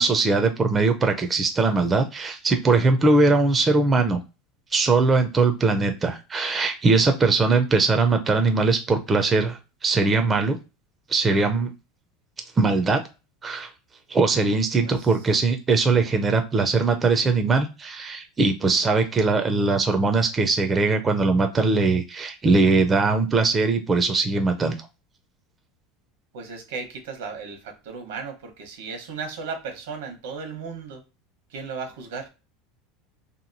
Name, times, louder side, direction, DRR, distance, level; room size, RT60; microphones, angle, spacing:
voice 1, 0.0-4.2 4.7-10.6 11.1-11.7 12.6-13.0 13.4-13.7 14.1-24.7, right 3 dB, 20° right, 6 dB, 0.4 m, -21 dB
voice 2, 14.8-15.2 26.3-31.0 31.5-32.3, right 5 dB, 90° right, 5 dB, 1.0 m, -35 dB
2.9 x 2.6 x 2.6 m, 0.29 s
supercardioid pair, 150°, 0 cm